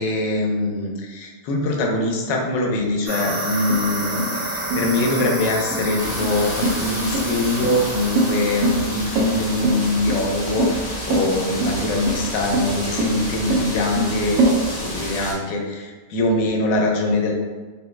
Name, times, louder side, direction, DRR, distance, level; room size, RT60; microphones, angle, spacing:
voice 1, 0.0-17.3, left 2 dB, 85° left, 1 dB, 1.2 m, -23 dB
sound 1, 3.1-11.3, right 1 dB, 60° right, 0.5 m, -31 dB
sound 2, 3.7-14.5, right 2 dB, 85° right, 1.3 m, -24 dB
sound 3, 6.0-15.3, equal, 35° left, 0.6 m, -31 dB
3.6 x 2.0 x 3.1 m, 1.3 s
omnidirectional pair, 1.8 m